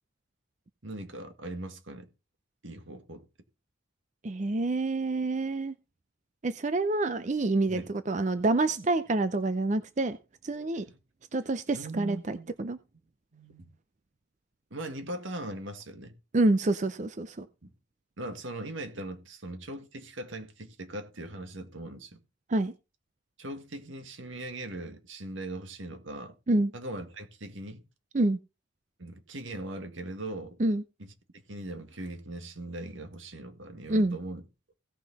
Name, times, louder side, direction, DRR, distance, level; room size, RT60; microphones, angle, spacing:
voice 1, 0.8-2.1 2.6-3.2 7.7-7.9 10.9-11.0 11.7-12.5 13.3-13.7 14.7-16.1 17.6-17.7 18.2-22.2 23.4-26.3 26.7-27.8 29.0-30.6 31.0-34.4, right 1 dB, 80° right, 1.8 m, -40 dB
voice 2, 4.2-5.7 6.4-10.2 10.4-10.9 11.3-12.8 16.3-17.5 22.5-22.7 26.5-26.7 28.1-28.4 30.6-30.8 33.9-34.2, right 2 dB, 35° right, 0.5 m, -27 dB
17.0 x 5.9 x 4.1 m
head